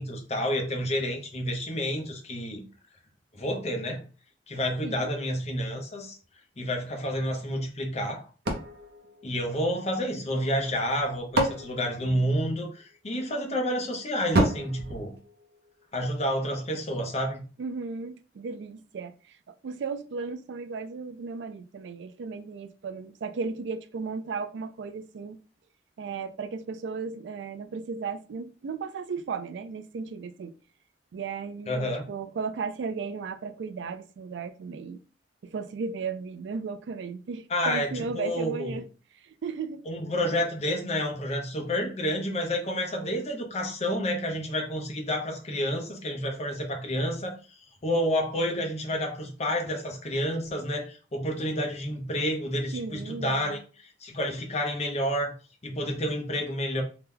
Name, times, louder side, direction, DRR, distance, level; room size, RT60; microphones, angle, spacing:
voice 1, 0.0-2.6 3.3-4.0 4.5-6.2 6.6-8.3 9.2-15.1 15.9-17.4 31.7-32.1 37.5-38.8 39.9-47.4 47.8-55.3 55.6-56.8, equal, 40° left, 0.8 m, -29 dB
sound 1, 8.5-10.0 10.9-12.8 14.3-15.9, right 1 dB, 65° right, 0.7 m, -30 dB
voice 2, 17.6-19.1 19.5-25.4 26.0-30.5 31.1-35.0 35.4-38.8 39.2-39.8 52.7-53.6, right 5 dB, 90° right, 0.4 m, -35 dB
2.8 x 2.2 x 3.5 m
head